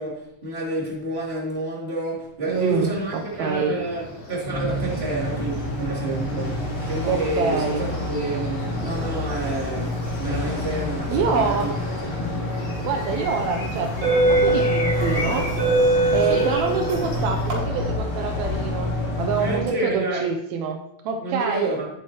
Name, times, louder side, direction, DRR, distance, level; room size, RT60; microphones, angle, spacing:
voice 1, 0.0-6.6 6.9-11.7 16.3-16.5 19.3-20.3 21.2-21.9, right 2 dB, 20° right, -5 dB, 2.7 m, -29 dB
sound 1, 2.5-17.9, left 2 dB, 70° left, 3.6 m, -39 dB
voice 2, 2.5-3.8 7.0-7.9 11.1-11.8 12.8-15.5 16.1-21.7, right 5 dB, 80° right, 5 dB, 2.0 m, -26 dB
sound 2, 4.4-19.6, left 1 dB, 85° left, 5.3 m, -28 dB
School bell tone, 12.7-13.0 13.7-17.5, right 2 dB, 60° right, 4.3 m, -22 dB
12.5 x 8.1 x 2.9 m, 0.82 s
omnidirectional pair, 3.3 m